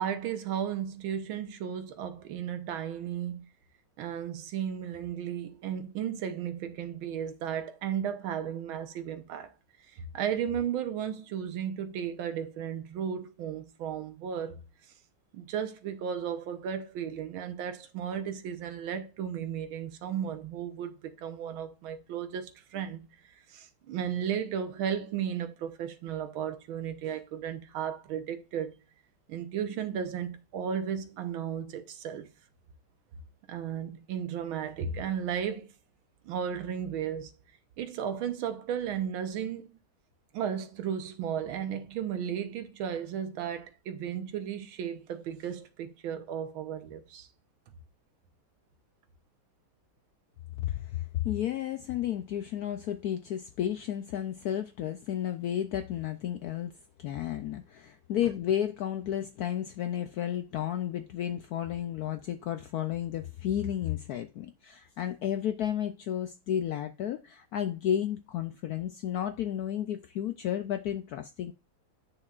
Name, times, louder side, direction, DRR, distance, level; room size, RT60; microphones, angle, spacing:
voice 1, 0.0-3.5 4.0-9.5 9.9-14.6 15.3-28.7 29.3-32.3 33.5-35.7 36.3-37.3 37.8-39.7 40.3-47.3 58.2-58.3, right 8 dB, 90° right, 1.7 m, -34 dB
voice 2, 50.6-71.5, left 10 dB, 80° left, 0.8 m, -32 dB
8.6 x 6.6 x 2.4 m
omnidirectional pair, 2.2 m